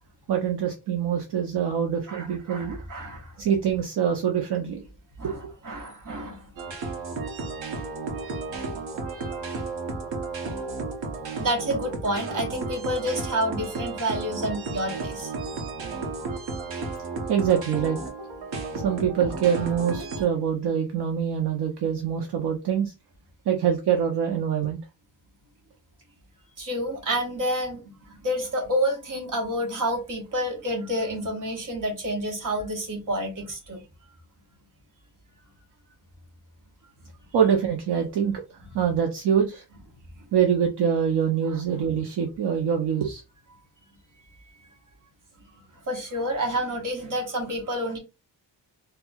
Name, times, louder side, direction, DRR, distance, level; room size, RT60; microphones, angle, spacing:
voice 1, 0.3-2.8 3.4-4.8 5.2-5.5 17.3-18.0 18.8-22.9 23.5-24.8 37.3-38.4 38.7-39.6 40.3-43.2, right 8 dB, 65° right, 0.6 m, -24 dB
voice 2, 2.1-3.3 5.2-6.5 11.4-15.3 26.6-33.8 45.9-48.0, equal, 45° right, 1.1 m, -29 dB
sound 1, 6.6-20.2, right 3 dB, 80° right, 1.0 m, -33 dB
4.4 x 2.3 x 2.3 m
wide cardioid pair, 165°, 43 cm